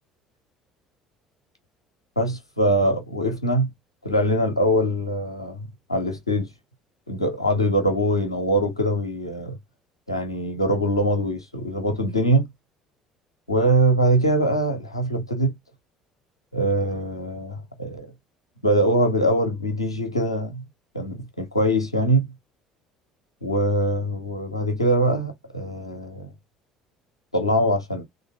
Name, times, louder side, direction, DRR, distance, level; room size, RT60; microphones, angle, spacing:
voice 1, 2.2-3.7 4.0-6.5 7.1-9.6 10.1-12.5 13.5-15.5 16.5-18.1 18.6-20.6 20.9-22.3 23.4-26.3 27.3-28.0, right 1 dB, 90° left, 0.7 m, -23 dB
3.4 x 2.5 x 2.9 m
figure-of-eight pair, 55°, 3 cm